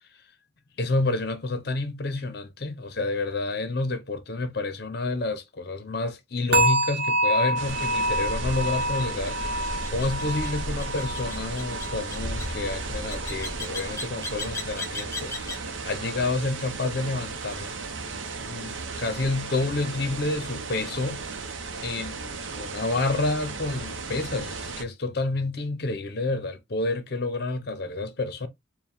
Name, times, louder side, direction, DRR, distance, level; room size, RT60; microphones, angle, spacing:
voice 1, 0.8-9.6 9.9-17.7 18.4-21.2 21.8-28.5, left 2 dB, 55° left, 0.7 m, -29 dB
sound 1, 6.5-13.6 13.9-14.3 14.8-14.9, right 1 dB, 50° right, 1.0 m, -28 dB
sound 2, 7.6-24.8, right 4 dB, 75° right, 0.7 m, -36 dB
sound 3, 7.7-15.7, left 1 dB, 15° left, 0.7 m, -35 dB
4.4 x 2.2 x 3.4 m
head